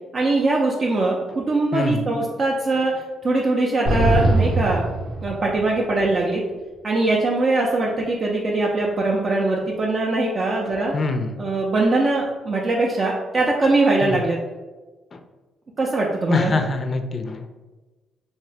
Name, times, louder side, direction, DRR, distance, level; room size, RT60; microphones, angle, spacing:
voice 1, 0.1-2.9 3.2-4.8 5.2-6.4 6.8-10.9 11.4-14.4 15.8-16.5, right 2 dB, 45° right, -2 dB, 0.4 m, -21 dB
voice 2, 1.7-2.0 10.9-11.3 14.0-14.2 15.1-15.2 16.3-17.5, left 3 dB, 40° left, 7 dB, 0.4 m, -24 dB
sound 1, 3.9-5.8, right 2 dB, 65° right, 0.9 m, -21 dB
2.8 x 2.7 x 3.3 m, 1.2 s
cardioid pair, 90°, 0 cm